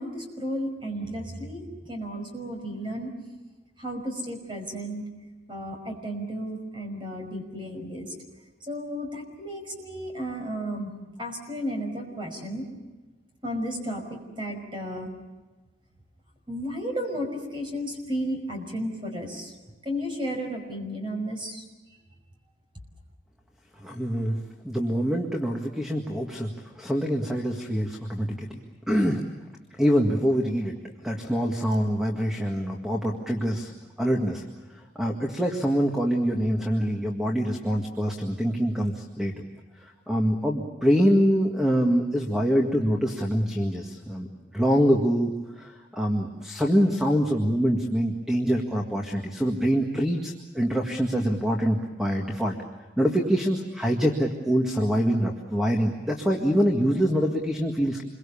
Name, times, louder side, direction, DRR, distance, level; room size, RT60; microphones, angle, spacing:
voice 1, 0.0-3.1 3.8-5.0 5.5-8.1 8.6-10.9 11.2-12.6 13.4-15.1 16.5-19.5 19.8-21.6, equal, 25° right, 3 dB, 5.6 m, -33 dB
voice 2, 23.8-28.6 28.9-29.2 29.8-30.7 31.0-33.7 34.0-34.4 34.7-39.3 39.8-44.3 44.5-52.6 53.0-58.0, equal, 5° right, 1 dB, 1.9 m, -25 dB
28.0 x 23.0 x 7.1 m, 1.2 s
head